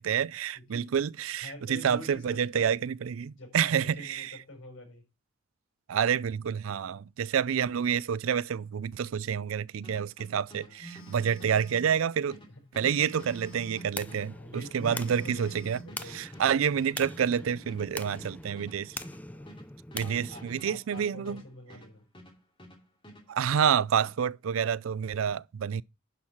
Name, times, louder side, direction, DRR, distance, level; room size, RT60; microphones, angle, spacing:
voice 1, 0.0-4.3 5.9-12.4 12.8-15.8 16.1-19.0 19.9-21.4 23.3-25.8, right 8 dB, 85° right, 0.4 m, -28 dB
voice 2, 0.5-0.9 1.4-2.7 3.4-5.0 10.5-10.9 12.5-12.6 13.2-13.3 14.3-16.3 19.3-19.6 20.0-22.1, left 1 dB, 75° left, 5.5 m, -46 dB
sound 1, 9.8-22.8 23.0-24.1, equal, 25° left, 2.7 m, -52 dB
Telephone, 10.8-11.9 12.8-13.9 14.8-15.9, right 2 dB, 45° left, 2.7 m, -47 dB
sound 2, 13.2-20.6, left 2 dB, 5° left, 0.4 m, -43 dB
11.0 x 5.6 x 4.4 m
head